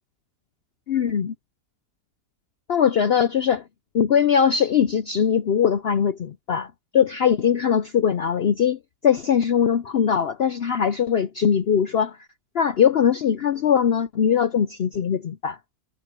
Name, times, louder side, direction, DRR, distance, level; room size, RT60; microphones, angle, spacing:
voice 1, 0.9-1.3 2.7-3.6 3.9-6.7 6.9-12.2 12.5-15.6, left 8 dB, 80° left, 0.5 m, -21 dB
omnidirectional pair, 1.8 m